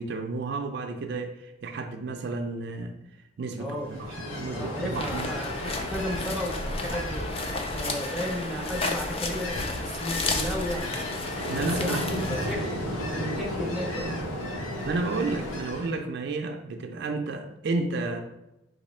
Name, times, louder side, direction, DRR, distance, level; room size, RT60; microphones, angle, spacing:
voice 1, 0.0-2.9 3.4-5.3 11.5-12.0 14.9-18.2, right 3 dB, 55° right, 4 dB, 0.4 m, -31 dB
voice 2, 3.6-3.9 4.2-7.3 7.7-10.9 11.5-14.1, equal, ahead, -2 dB, 0.7 m, -34 dB
Ocean, 3.8-16.0, left 1 dB, 85° left, 1.0 m, -34 dB
sound 1, 4.9-12.5, left 3 dB, 30° left, 0.4 m, -33 dB
4.1 x 2.6 x 4.2 m, 0.92 s
head